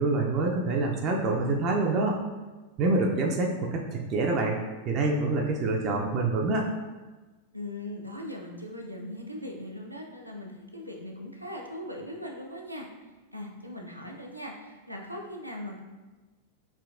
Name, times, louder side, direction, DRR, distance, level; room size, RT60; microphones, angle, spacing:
voice 1, 0.0-2.2 2.8-4.6 4.9-6.6, right 2 dB, 35° right, 0 dB, 0.4 m, -26 dB
voice 2, 7.5-12.9 13.3-15.8, left 1 dB, 90° right, -1 dB, 0.5 m, -39 dB
4.7 x 2.8 x 2.4 m, 1.2 s
figure-of-eight pair, 90°, 0 cm